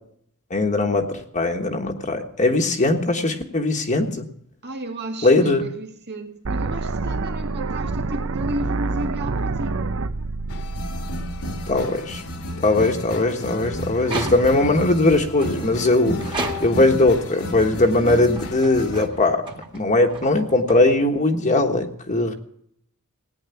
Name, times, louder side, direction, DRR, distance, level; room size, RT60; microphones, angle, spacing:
voice 1, 0.5-4.3 5.2-5.6 11.7-12.2 12.6-19.4 19.7-22.3, left 2 dB, 35° left, 1.4 m, -20 dB
voice 2, 4.6-9.8, right 1 dB, 50° right, 2.3 m, -32 dB
sound 1, 6.4-12.4, right 3 dB, 65° right, 0.7 m, -27 dB
sound 2, 10.5-19.1, left 1 dB, 70° left, 1.8 m, -32 dB
sound 3, 14.0-14.8 15.4-17.0 17.7-21.3, right 2 dB, 20° right, 2.0 m, -35 dB
17.5 x 9.7 x 7.0 m
head